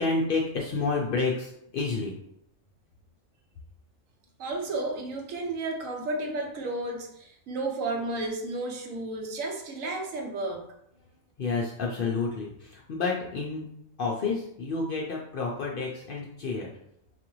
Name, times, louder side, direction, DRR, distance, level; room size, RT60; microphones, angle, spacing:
voice 1, 0.0-2.1 11.4-13.7 14.0-16.7, left 4 dB, 60° left, -3 dB, 0.5 m, -29 dB
voice 2, 4.4-10.7, right 2 dB, 80° right, 2 dB, 1.1 m, -32 dB
4.0 x 2.5 x 3.0 m, 0.75 s
omnidirectional pair, 1.4 m